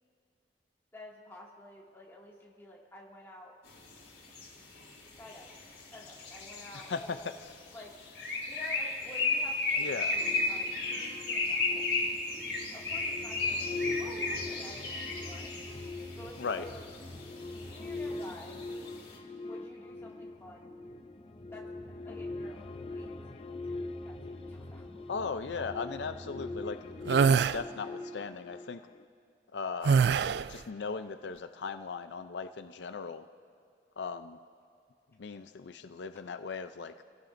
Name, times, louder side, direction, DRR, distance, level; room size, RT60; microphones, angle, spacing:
voice 1, 0.9-3.6 5.2-6.9 7.7-7.9 8.5-11.9 12.7-15.5 16.1-16.9 17.6-18.6 19.4-20.8 21.5-21.7 22.0-24.9, left 1 dB, 15° left, -4 dB, 2.2 m, -51 dB
sound 1, 3.7-19.2, left 3 dB, 65° left, 3.7 m, -35 dB
voice 2, 6.7-7.6 9.8-10.2 16.4-16.7 25.1-28.8 29.5-30.0 30.5-33.2 34.0-34.4 35.2-36.9, left 5 dB, 85° left, 9 dB, 0.5 m, -38 dB
sound 2, 10.1-29.0, left 2 dB, 30° left, 0.6 m, -42 dB
sound 3, 27.1-27.6 29.9-30.5, right 6 dB, 75° right, 0.3 m, -23 dB
27.0 x 16.5 x 2.6 m, 2.4 s
head